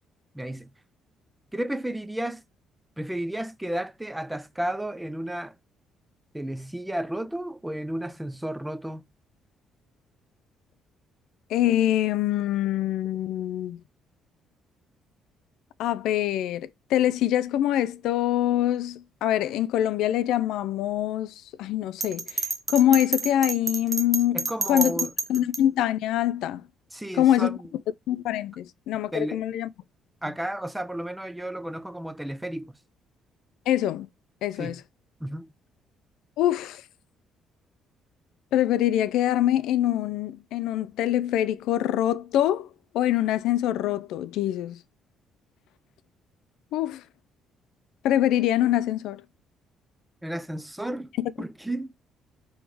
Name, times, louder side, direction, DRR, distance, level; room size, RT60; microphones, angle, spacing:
voice 1, 0.3-0.7 1.5-2.4 3.0-5.6 6.3-9.1 24.3-25.1 26.9-27.7 29.1-29.4 30.2-32.8 34.5-34.8 35.2-35.5 50.2-51.1 51.4-51.9, right 1 dB, 5° right, 0.4 m, -32 dB
voice 2, 11.5-13.8 15.8-24.9 25.3-26.6 27.1-27.6 28.1-29.7 33.7-34.1 34.4-34.8 36.4-36.8 38.5-42.7 42.9-44.8 46.7-47.0 48.0-49.2 51.2-51.3, left 12 dB, 85° left, 0.3 m, -24 dB
Bell, 22.0-25.6, right 4 dB, 30° right, 0.8 m, -29 dB
3.5 x 3.1 x 4.6 m
cardioid pair, 105°, 0 cm